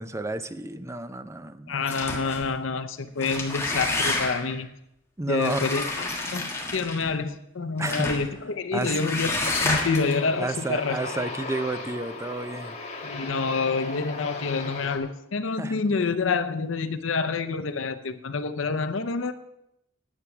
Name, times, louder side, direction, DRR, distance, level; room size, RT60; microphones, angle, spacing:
voice 1, 0.0-1.8 5.2-5.6 7.8-8.1 8.7-9.0 10.4-12.8 15.6-15.8, right 2 dB, 15° right, 12 dB, 0.5 m, -31 dB
voice 2, 1.7-4.7 5.3-11.0 13.0-19.3, left 4 dB, 75° left, 10 dB, 0.7 m, -28 dB
sound 1, 1.8-2.5 3.1-4.6 5.4-7.1 7.8-8.3 8.8-10.1, left 2 dB, 15° left, 1.6 m, -29 dB
Aircraft, 9.5-15.0, left 3 dB, 35° left, 1.6 m, -36 dB
10.0 x 8.5 x 6.0 m, 0.82 s
head